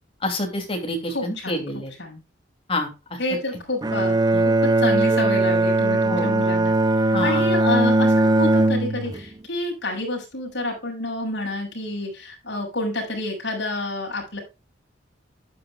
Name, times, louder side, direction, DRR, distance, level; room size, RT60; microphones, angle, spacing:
voice 1, 0.2-1.9 2.7-3.2 4.3-4.4 6.1-6.3 7.1-7.5, left 1 dB, 30° left, 3 dB, 2.8 m, -27 dB
voice 2, 1.1-1.6 2.0-2.2 3.2-6.7 7.2-14.4, left 2 dB, 65° left, -2 dB, 6.1 m, -28 dB
Bowed string instrument, 3.8-9.3, right 2 dB, 20° right, 0.5 m, -19 dB
11.5 x 9.6 x 2.3 m, 0.27 s
head